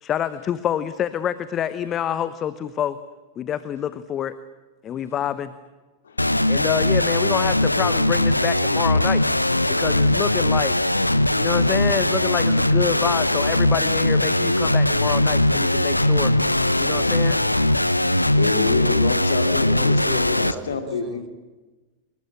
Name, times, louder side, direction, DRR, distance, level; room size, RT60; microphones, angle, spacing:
voice 1, 0.0-3.0 3.4-4.4 4.8-5.5 6.5-9.2 9.7-10.8 11.2-16.3 16.8-17.4, left 9 dB, 30° left, 15 dB, 1.0 m, -27 dB
voice 2, 6.0-6.6 18.0-21.3, left 5 dB, 70° left, 8 dB, 2.8 m, -28 dB
sound 1, 6.2-20.5, left 1 dB, 85° left, 0.8 m, -20 dB
sound 2, 14.9-20.3, right 10 dB, 45° right, 2.0 m, -44 dB
voice 3, 19.7-21.3, right 6 dB, 25° right, 8 dB, 2.7 m, -38 dB
26.0 x 22.0 x 8.8 m, 1.2 s
figure-of-eight pair, 90°, 0 cm